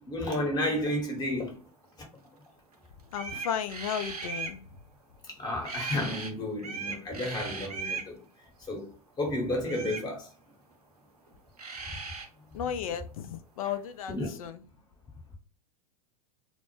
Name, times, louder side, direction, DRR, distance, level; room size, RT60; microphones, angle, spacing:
voice 1, 0.0-1.6 5.4-8.2 8.7-8.9 9.2-10.3 14.1-14.5, left 1 dB, 20° left, 0.9 m, -31 dB
sound 1, 2.7-2.8 3.1-4.6 5.6-6.3 6.6-8.1 9.6-10.1 11.3-11.4 11.6-12.3, right 5 dB, 90° right, 0.5 m, -37 dB
voice 2, 3.1-4.6 12.5-14.6, left 8 dB, 65° left, 0.4 m, -34 dB
2.1 x 2.0 x 3.0 m
hypercardioid pair, 95°, 19 cm